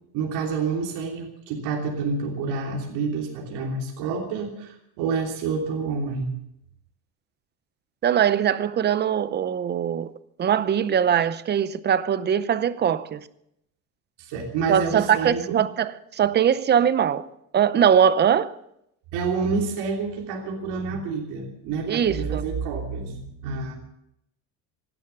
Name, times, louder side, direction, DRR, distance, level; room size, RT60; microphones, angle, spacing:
voice 1, 0.1-6.3 14.2-15.6 19.1-23.7, right 4 dB, 70° right, 3.3 m, -28 dB
voice 2, 8.0-10.1 10.4-13.2 14.7-17.3 17.5-18.5 21.9-22.4, right 8 dB, 25° right, 0.6 m, -21 dB
17.0 x 12.0 x 7.1 m
cardioid pair, 150°, 42 cm